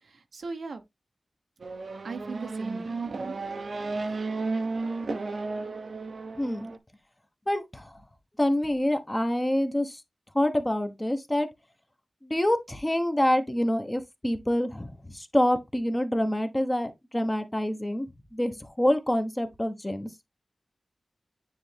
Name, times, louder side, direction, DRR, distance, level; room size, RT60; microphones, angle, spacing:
voice 1, 0.0-0.8 2.0-3.4, right 4 dB, 85° right, 1.1 m, -38 dB
Race car auto racing / Accelerating revving vroom, 1.6-6.8, right 3 dB, 70° right, 0.8 m, -33 dB
voice 2, 6.3-6.7 7.5-8.0 8.4-10.0 10.3-11.5 12.2-20.1, left 1 dB, 15° left, 1.0 m, -27 dB
9.6 x 3.3 x 3.3 m
wide cardioid pair, 95°, 0 cm